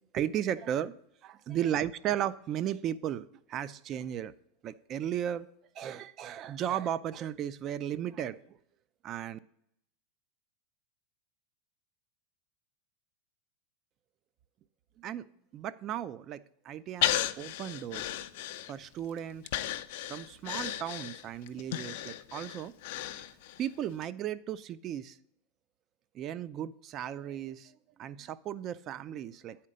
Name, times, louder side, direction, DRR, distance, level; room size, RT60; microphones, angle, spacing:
voice 1, 0.1-0.9 1.2-4.3 4.6-5.5 5.8-8.4 9.0-9.4 15.0-15.2 15.5-18.2 18.7-19.5 20.1-22.7 23.6-25.2 26.1-27.7 28.0-29.6, right 10 dB, 40° right, 16 dB, 0.4 m, -35 dB
Breathing, 17.0-19.0 19.5-23.6 24.0-24.1, left 13 dB, 65° left, 0.4 m, -34 dB
9.2 x 4.3 x 5.0 m, 0.74 s
hypercardioid pair, 120°, 0 cm